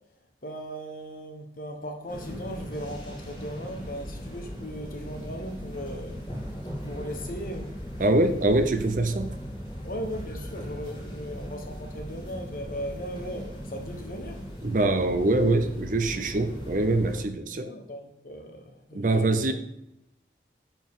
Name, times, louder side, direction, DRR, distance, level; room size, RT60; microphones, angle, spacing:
voice 1, 0.4-6.2 6.8-7.7 9.1-9.2 9.8-14.4 17.6-19.5, equal, 50° left, 3 dB, 1.2 m, -38 dB
sound 1, 2.1-17.2, equal, 30° left, 3.0 m, -38 dB
voice 2, 8.0-9.4 14.6-17.7 18.9-19.5, right 2 dB, 45° right, 8 dB, 0.6 m, -24 dB
10.5 x 4.6 x 3.7 m, 0.84 s
head